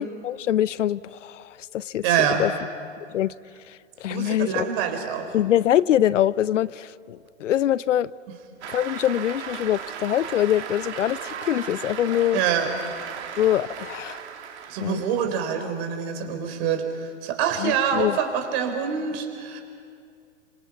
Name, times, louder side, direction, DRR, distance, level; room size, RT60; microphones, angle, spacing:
voice 1, 0.2-2.0 2.4-2.5 3.1-3.3 3.7-4.7 5.3-8.1 8.7-12.4 13.4-14.2 14.8-15.0 17.6-18.2, left 11 dB, 70° left, 20 dB, 0.6 m, -24 dB
voice 2, 2.0-2.4 4.1-5.3 12.3-12.7 14.7-19.6, right 8 dB, 45° right, 6 dB, 3.9 m, -25 dB
Cheering / Applause, 8.6-15.5, right 8 dB, 60° right, 2.4 m, -36 dB
30.0 x 26.0 x 6.0 m, 2.3 s
hypercardioid pair, 120°, 38 cm